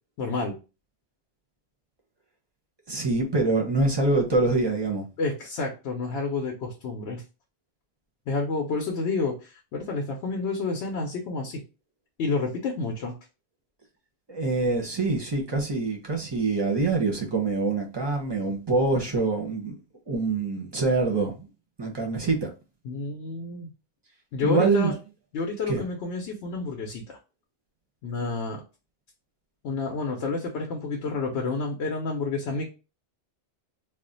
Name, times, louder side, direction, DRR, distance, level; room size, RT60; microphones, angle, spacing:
voice 1, 0.2-0.6 5.2-7.2 8.3-11.6 12.2-13.1 22.8-23.7 24.3-24.9 25.3-27.2 28.0-28.6 29.6-32.6, left 3 dB, 80° left, 1 dB, 0.9 m, -29 dB
voice 2, 2.9-5.1 14.3-19.7 20.1-21.5 21.8-22.5 24.4-24.9 25.7-25.8, right 3 dB, 30° right, 0 dB, 0.5 m, -25 dB
2.4 x 2.1 x 3.8 m, 0.31 s
omnidirectional pair, 1.1 m